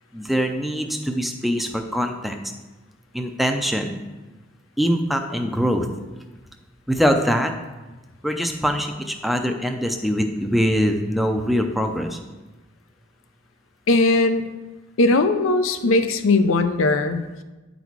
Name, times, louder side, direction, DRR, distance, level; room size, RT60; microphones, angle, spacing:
voice 1, 0.1-2.4 3.1-3.9 4.8-5.9 6.9-7.5 8.2-12.2, equal, ahead, 4 dB, 0.5 m, -23 dB
voice 2, 13.9-14.4 15.0-17.2, left 2 dB, 85° left, 9 dB, 0.6 m, -19 dB
9.3 x 4.1 x 4.6 m, 1.1 s
head